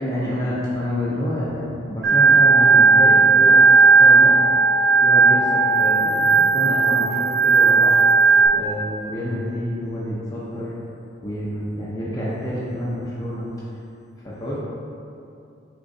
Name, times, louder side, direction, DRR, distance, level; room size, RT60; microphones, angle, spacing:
voice 1, 0.0-3.6 3.9-4.4 5.0-8.0 8.5-10.7 11.2-13.5 14.2-14.6, equal, 20° left, -7 dB, 0.5 m, -28 dB
Organ, 2.0-8.5, right 4 dB, 75° right, 0.9 m, -15 dB
6.1 x 3.0 x 2.6 m, 2.6 s
head